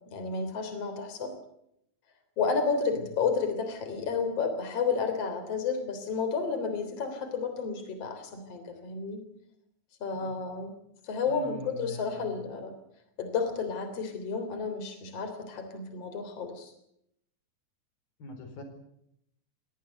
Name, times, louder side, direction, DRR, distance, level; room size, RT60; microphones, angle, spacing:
voice 1, 0.1-1.3 2.4-9.2 10.0-10.7 11.0-12.7 13.2-16.7, left 5 dB, 45° left, 8 dB, 4.3 m, -31 dB
voice 2, 10.1-10.6 11.3-12.3 18.2-18.6, left 1 dB, 85° left, 7 dB, 6.2 m, -43 dB
24.0 x 19.0 x 8.0 m, 0.75 s
omnidirectional pair, 4.0 m